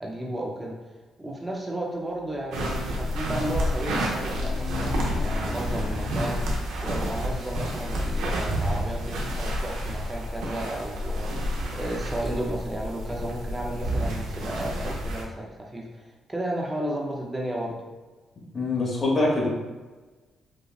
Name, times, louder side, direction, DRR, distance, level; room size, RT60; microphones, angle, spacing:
voice 1, 0.0-0.8 1.2-17.8, right 1 dB, 15° right, -2 dB, 0.4 m, -33 dB
Race car auto racing, 2.3-6.6, left 3 dB, 90° left, 0.5 m, -39 dB
sound 1, 2.5-15.2, equal, 85° right, 0.6 m, -29 dB
voice 2, 18.5-19.5, left 2 dB, 35° left, -3 dB, 1.0 m, -24 dB
5.1 x 2.1 x 2.3 m, 1.3 s
cardioid pair, 90°, 0 cm